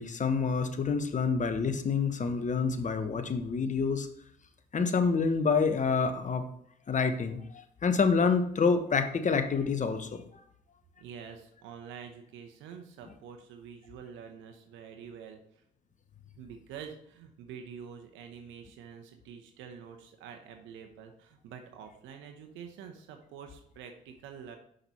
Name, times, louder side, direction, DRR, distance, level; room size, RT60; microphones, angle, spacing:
voice 1, 0.0-4.1 4.7-6.4 6.9-10.2, left 5 dB, 40° left, 9 dB, 0.9 m, -27 dB
voice 2, 11.0-15.4 16.4-24.6, right 7 dB, 75° right, 5 dB, 0.9 m, -47 dB
5.9 x 5.1 x 4.2 m, 0.70 s
hypercardioid pair, 55°, 20 cm